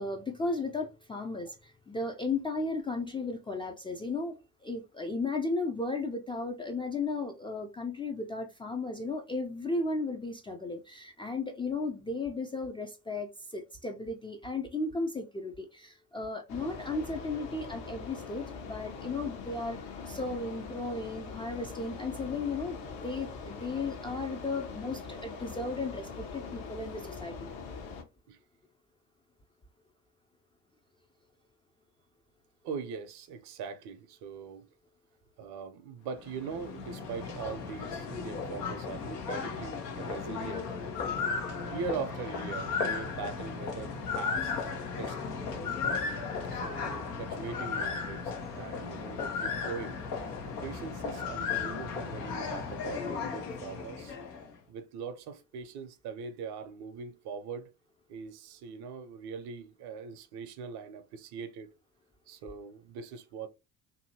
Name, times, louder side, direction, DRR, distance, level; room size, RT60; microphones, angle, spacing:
voice 1, 0.0-19.8 20.1-22.8 23.0-27.5 44.9-45.2, left 3 dB, 10° left, 0.3 m, -35 dB
sound 1, 16.5-28.0, left 5 dB, 60° left, 0.9 m, -42 dB
voice 2, 32.6-34.7 35.4-40.7 41.7-44.7 45.0-45.2 45.5-45.8 46.1-46.2 46.5-50.0 50.6-54.2 54.7-57.7 58.1-61.7 62.3-63.5, right 5 dB, 60° right, 0.7 m, -41 dB
sound 2, 36.1-54.5, left 5 dB, 85° left, 0.7 m, -35 dB
2.7 x 2.6 x 2.7 m
hypercardioid pair, 50°, 46 cm